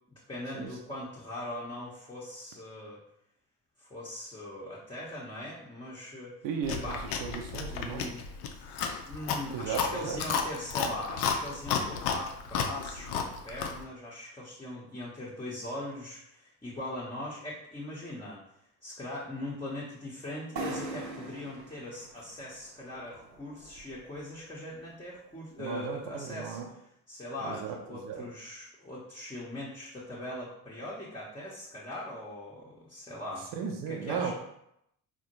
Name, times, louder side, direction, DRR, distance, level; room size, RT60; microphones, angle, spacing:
voice 1, 0.1-3.0 3.8-6.3 6.7-7.1 7.7-8.3 8.5-18.4 18.8-33.5 33.9-34.3, left 1 dB, 10° left, -7 dB, 0.7 m, -40 dB
voice 2, 6.4-8.1 9.5-10.2 25.6-26.7 27.4-27.8 28.0-28.3 33.6-34.3, right 6 dB, 45° right, 2 dB, 0.6 m, -35 dB
Chewing mastication, 6.6-13.8, left 6 dB, 50° left, 0.6 m, -33 dB
sound 1, 20.6-24.2, right 2 dB, 85° right, 0.6 m, -41 dB
4.1 x 2.1 x 2.9 m, 0.78 s
figure-of-eight pair, 50°, 49 cm